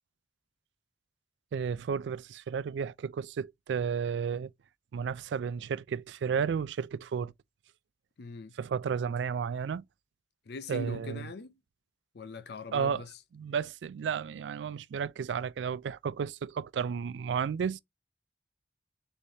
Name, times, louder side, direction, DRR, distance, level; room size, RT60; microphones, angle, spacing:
voice 1, 1.5-4.5 4.9-7.3 8.6-9.8 10.7-11.2 12.7-13.0 13.3-17.8, right 6 dB, 85° right, 0.3 m, -32 dB
voice 2, 8.2-8.6 10.5-11.5 12.1-13.1, left 3 dB, 65° left, 0.5 m, -41 dB
4.2 x 3.3 x 3.4 m
head